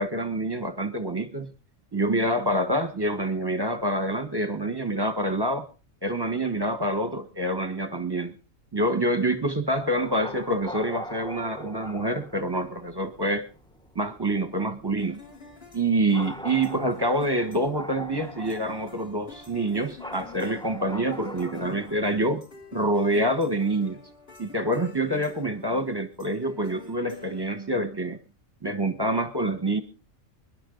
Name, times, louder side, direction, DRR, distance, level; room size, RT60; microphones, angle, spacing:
voice 1, 0.0-1.5 1.9-5.7 6.0-8.3 8.7-13.5 13.9-15.2 15.7-22.4 22.7-24.0 24.4-28.2 28.6-29.8, right 1 dB, 20° right, 9 dB, 1.1 m, -26 dB
sound 1, 9.7-22.3, equal, 5° left, 0.6 m, -42 dB
sound 2, 15.0-28.2, left 4 dB, 45° left, 3.3 m, -48 dB
24.5 x 11.0 x 3.8 m, 0.34 s
omnidirectional pair, 1.4 m